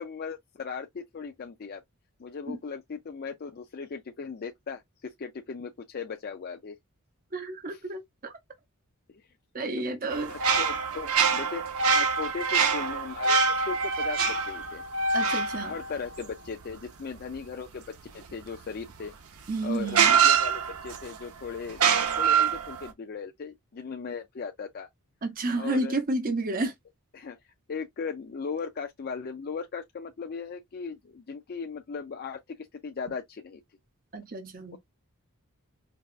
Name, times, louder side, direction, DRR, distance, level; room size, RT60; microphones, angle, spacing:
voice 1, 0.0-1.8 2.2-6.8 7.7-7.8 9.8-9.9 10.3-11.6 11.9-14.8 15.6-17.8 18.1-19.1 19.6-21.8 22.1-24.9 25.5-26.0 27.1-32.4 32.8-33.6, left 5 dB, 45° left, 0.4 m, -38 dB
voice 2, 7.3-8.3 9.5-10.5 15.1-15.7 19.5-20.1 25.2-26.7 34.1-34.8, right 2 dB, 40° right, 0.7 m, -31 dB
sound 1, 10.1-16.7 19.0-19.1 19.9-21.1 21.7-22.9, right 6 dB, 75° right, 0.8 m, -25 dB
4.6 x 2.3 x 2.4 m
head